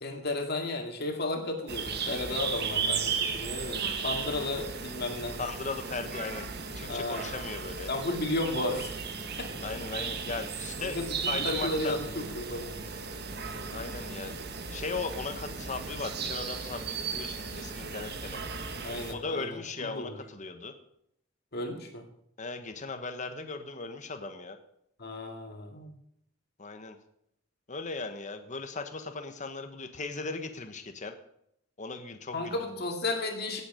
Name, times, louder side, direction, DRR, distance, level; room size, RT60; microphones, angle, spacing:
voice 1, 0.0-5.4 6.9-7.3 7.9-8.9 9.4-9.5 10.8-12.7 18.8-20.2 21.5-22.0 25.0-25.9 32.3-33.6, left 2 dB, 55° left, 3 dB, 2.2 m, -33 dB
sound 1, 1.7-19.1, right 5 dB, 55° right, 1.3 m, -35 dB
voice 2, 5.4-6.5 6.7-7.9 9.6-12.0 13.7-14.4 14.7-18.6 19.1-20.7 22.4-24.6 26.6-27.0 27.7-31.1 31.8-32.8, left 3 dB, 40° left, 7 dB, 1.2 m, -38 dB
17.0 x 8.2 x 5.1 m, 0.75 s
head